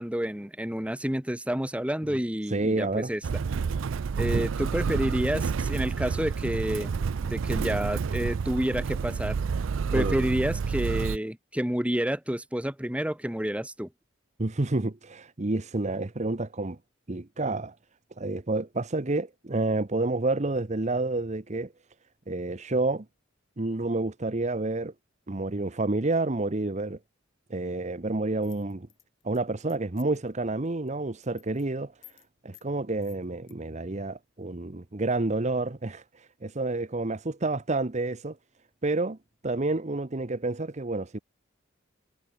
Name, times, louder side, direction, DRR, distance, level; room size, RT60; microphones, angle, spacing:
voice 1, 0.0-3.2 4.2-6.9 7.2-9.4 9.9-13.9, equal, 5° right, 1.3 m, -29 dB
voice 2, 2.5-3.1 4.3-4.4 9.9-10.2 14.4-16.8 17.1-17.8 18.2-21.7 22.3-23.1 23.6-24.9 25.3-27.0 27.5-28.9 29.2-31.9 32.4-38.4 38.8-39.2 39.4-41.2, right 2 dB, 35° right, 0.9 m, -29 dB
Motor vehicle (road), 3.2-11.2, right 5 dB, 75° right, 0.4 m, -29 dB
sound 1, 28.4-30.3 30.7-30.9 31.2-31.7 32.0-32.3 32.5-32.7 33.0-33.5, left 17 dB, 70° left, 4.5 m, -54 dB
head